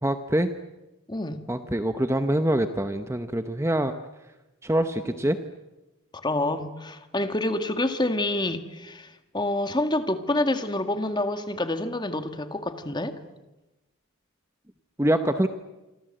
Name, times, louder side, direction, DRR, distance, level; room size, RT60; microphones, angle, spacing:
voice 1, 0.0-0.5 1.5-3.9 4.6-5.4 15.0-15.5, right 1 dB, 10° right, 8 dB, 0.9 m, -24 dB
voice 2, 1.1-1.4 5.1-5.2 6.1-13.2, left 1 dB, 20° left, 8 dB, 1.8 m, -27 dB
27.0 x 25.5 x 7.8 m, 1.0 s
head